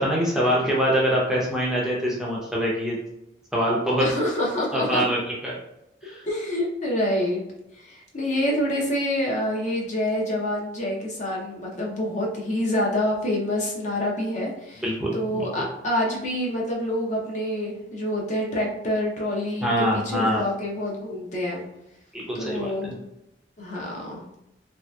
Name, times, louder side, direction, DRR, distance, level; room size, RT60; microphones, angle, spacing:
voice 1, 0.0-3.0 3.5-4.1 4.7-5.5 6.0-6.2 14.8-15.6 19.6-20.4 22.1-22.9, equal, 5° right, -5 dB, 0.5 m, -24 dB
voice 2, 4.0-5.0 6.0-7.4 7.8-14.8 15.1-21.6 22.3-23.0 23.6-24.2, left 1 dB, 40° left, -2 dB, 0.6 m, -27 dB
3.2 x 2.7 x 2.2 m, 0.85 s
head